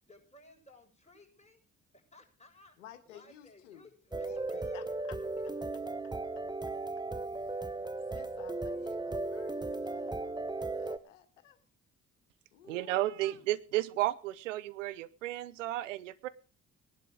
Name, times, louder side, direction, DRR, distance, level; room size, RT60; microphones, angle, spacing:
voice 1, 0.1-1.6 1.9-2.8 3.1-4.9 5.4-5.5, left 2 dB, 20° left, 2 dB, 7.3 m, -58 dB
voice 2, 2.8-3.9 4.5-5.2 7.2-7.5 8.1-11.6 12.5-13.4, left 11 dB, 90° left, 9 dB, 1.5 m, -55 dB
sound 1, 4.1-11.0, right 2 dB, 10° right, 1.2 m, -36 dB
voice 3, 12.7-16.3, right 15 dB, 90° right, 17 dB, 0.7 m, -33 dB
19.0 x 11.5 x 4.8 m, 0.37 s
hypercardioid pair, 45°, 37 cm